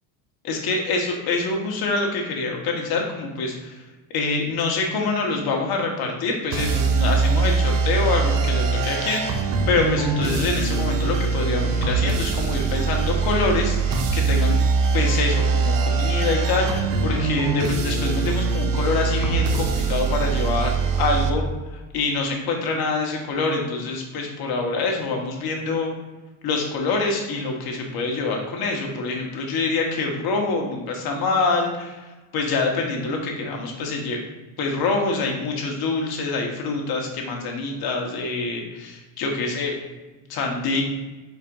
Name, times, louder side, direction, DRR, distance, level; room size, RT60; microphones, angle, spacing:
voice 1, 0.4-3.8 4.1-14.6 14.9-21.5 21.9-25.9 26.4-32.0 32.3-34.2 34.6-39.7 40.3-40.8, left 3 dB, 55° left, 1 dB, 1.3 m, -25 dB
sound 1, 6.5-21.3, right 4 dB, 50° right, 0.7 m, -22 dB
4.4 x 4.3 x 2.6 m, 1.2 s
supercardioid pair, 90°, 44 cm